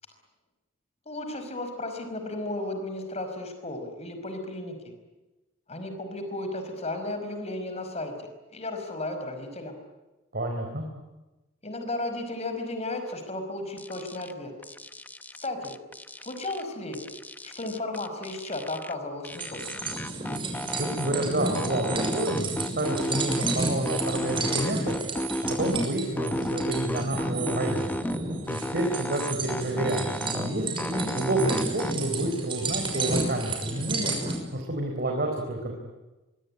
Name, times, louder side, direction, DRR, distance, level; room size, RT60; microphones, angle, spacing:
voice 1, 1.1-4.8 5.7-9.7 11.6-14.5 15.4-15.7 16.2-17.0 17.4-19.6, left 2 dB, 35° left, 7 dB, 5.3 m, -34 dB
voice 2, 10.3-10.9 20.7-24.9 25.4-28.0 28.5-30.7 31.1-34.1 34.5-35.7, right 1 dB, 50° right, 2 dB, 4.2 m, -29 dB
sound 1, 13.8-14.3 14.6-16.6 16.9-18.9 19.2-21.3 21.5-23.6 23.9-25.9 26.2-28.2 28.5-30.5 30.8-31.9, equal, 10° left, 0.9 m, -33 dB
sound 2, 19.3-34.4, right 2 dB, 25° right, 6.3 m, -32 dB
25.0 x 23.5 x 9.8 m, 1.1 s
head